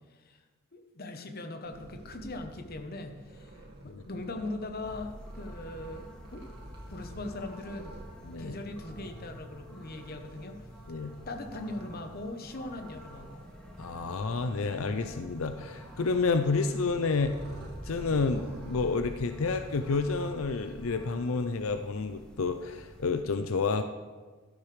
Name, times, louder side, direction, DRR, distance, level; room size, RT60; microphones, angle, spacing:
voice 1, 0.1-0.4 0.7-6.5 6.9-8.0 8.4-10.7 11.0-13.4, left 2 dB, 50° left, 6 dB, 1.0 m, -40 dB
Purr, 1.6-20.9, right 1 dB, 55° right, 1.9 m, -48 dB
sound 1, 4.8-23.2, equal, 5° left, 1.6 m, -50 dB
voice 2, 10.9-11.2 13.8-17.3 17.8-23.8, left 4 dB, 85° left, 8 dB, 0.6 m, -30 dB
13.0 x 12.0 x 3.3 m, 1.3 s
head